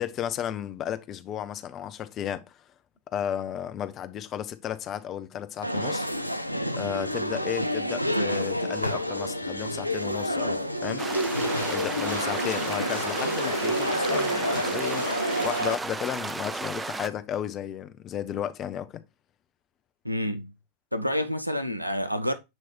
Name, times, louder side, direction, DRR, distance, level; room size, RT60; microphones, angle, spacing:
voice 1, 0.0-2.6 3.1-6.1 6.8-11.0 11.6-15.1 15.4-19.0, left 10 dB, 30° left, 0.6 m, -33 dB
sound 1, 5.6-15.8, equal, 90° left, 0.4 m, -28 dB
sound 2, 11.0-17.1, right 3 dB, 10° right, 0.4 m, -34 dB
voice 2, 20.0-20.5 20.9-22.3, equal, 90° right, 0.7 m, -28 dB
7.7 x 3.1 x 4.3 m
figure-of-eight pair, 90°, 0 cm